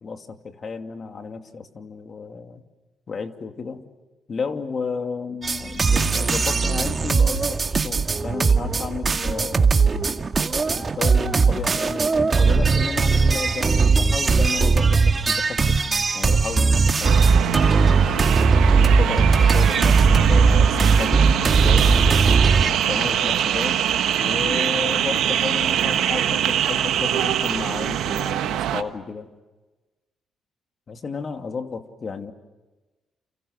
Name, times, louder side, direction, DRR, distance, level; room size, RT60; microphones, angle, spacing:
voice 1, 0.0-2.6 3.1-3.8 4.3-9.7 10.8-15.6 16.1-17.7 18.7-22.1 22.5-23.8 24.2-29.3 30.9-32.3, left 5 dB, 45° left, 6 dB, 2.6 m, -32 dB
sound 1, 5.4-22.7, right 4 dB, 35° right, 1.9 m, -19 dB
sound 2, 17.0-28.8, right 11 dB, 85° right, 1.4 m, -25 dB
sound 3, 19.8-28.3, right 9 dB, 70° right, 4.0 m, -26 dB
30.0 x 28.5 x 6.6 m, 1.2 s
cardioid pair, 90°, 0 cm